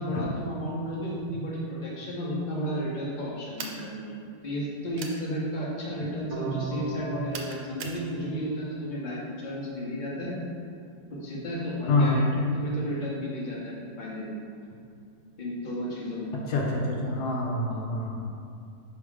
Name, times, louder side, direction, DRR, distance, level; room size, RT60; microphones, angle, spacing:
voice 1, 0.0-4.2 4.4-10.4 11.2-14.3 15.4-16.3, equal, 30° left, -6 dB, 1.1 m, -33 dB
sound 1, 3.6-3.9 5.0-5.2 7.3-8.0, right 5 dB, 90° right, 1.2 m, -38 dB
sound 2, 6.3-9.3, right 3 dB, 35° right, 1.2 m, -38 dB
voice 2, 11.9-12.2 16.5-18.3, left 2 dB, 75° left, -2 dB, 1.3 m, -26 dB
5.5 x 3.5 x 4.9 m, 2.4 s
omnidirectional pair, 1.7 m